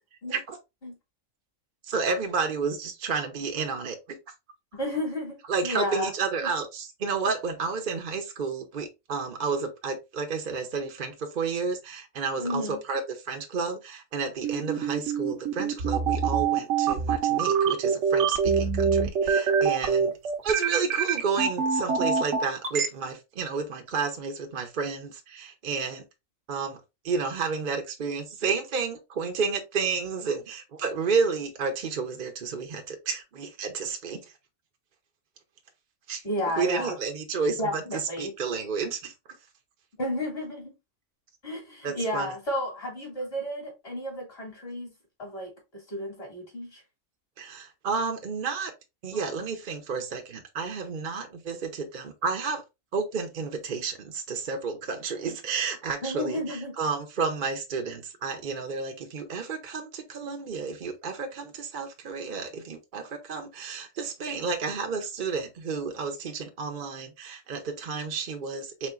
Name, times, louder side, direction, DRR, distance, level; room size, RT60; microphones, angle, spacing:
voice 1, 1.9-4.2 5.5-20.1 20.4-26.0 26.5-34.2 36.1-36.2 36.6-39.1 41.8-42.3 47.4-48.7 49.0-52.6 52.9-68.9, right 5 dB, 45° right, 0.8 m, -31 dB
voice 2, 4.7-6.1 6.4-6.5 12.4-12.8 36.2-36.9 37.6-38.3 40.0-40.7 41.4-44.9 45.2-46.8 49.1-49.2 56.0-56.7, left 1 dB, 50° left, 2.5 m, -32 dB
sound 1, 14.4-22.9, right 6 dB, 65° right, 1.1 m, -24 dB
4.3 x 3.7 x 2.4 m
omnidirectional pair, 1.4 m